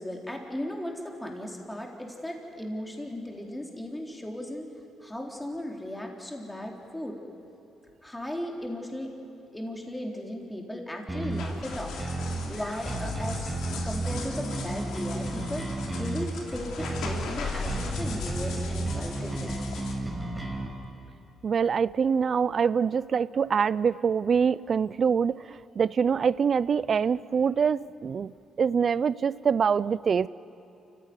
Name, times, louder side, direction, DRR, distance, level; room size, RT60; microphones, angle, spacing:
voice 1, 0.0-4.7 5.0-7.2 8.0-9.1 9.5-11.9 12.4-15.6 15.9-19.6, left 1 dB, 10° left, 0 dB, 3.9 m, -36 dB
sound 1, 11.1-20.7, right 2 dB, 10° right, 5.2 m, -33 dB
sound 2, 11.3-19.9, left 4 dB, 80° left, 3.3 m, -39 dB
voice 2, 21.4-30.3, right 6 dB, 50° right, 19 dB, 0.5 m, -25 dB
29.0 x 16.0 x 9.7 m, 2.9 s
cardioid pair, 90°, 0 cm